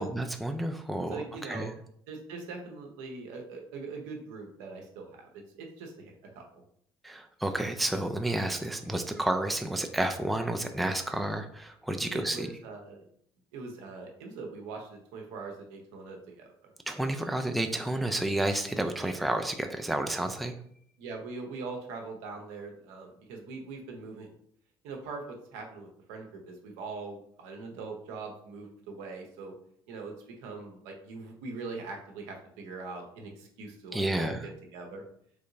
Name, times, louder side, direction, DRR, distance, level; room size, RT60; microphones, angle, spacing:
voice 1, 0.0-1.7 7.0-12.5 16.9-20.5 33.9-34.4, right 1 dB, ahead, 5 dB, 0.4 m, -31 dB
voice 2, 1.1-1.7 2.1-5.3 5.5-6.6 12.1-13.0 13.5-16.7 21.0-24.3 24.8-29.6 29.9-34.4 34.7-35.0, right 4 dB, 70° right, 2 dB, 0.8 m, -42 dB
3.6 x 3.3 x 2.6 m, 0.66 s
figure-of-eight pair, 55°, 13 cm